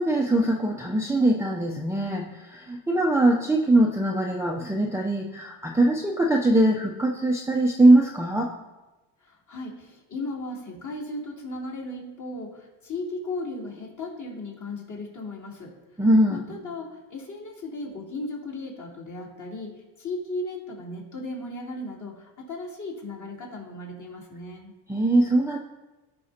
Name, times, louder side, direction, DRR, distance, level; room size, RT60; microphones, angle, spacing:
voice 1, 0.0-8.5 16.0-16.6 24.9-25.6, right 1 dB, 5° right, -1 dB, 0.7 m, -22 dB
voice 2, 9.2-15.8 16.3-24.7, left 2 dB, 40° left, -4 dB, 3.2 m, -36 dB
14.5 x 5.5 x 2.9 m, 1.1 s
cardioid pair, 85°, 45 cm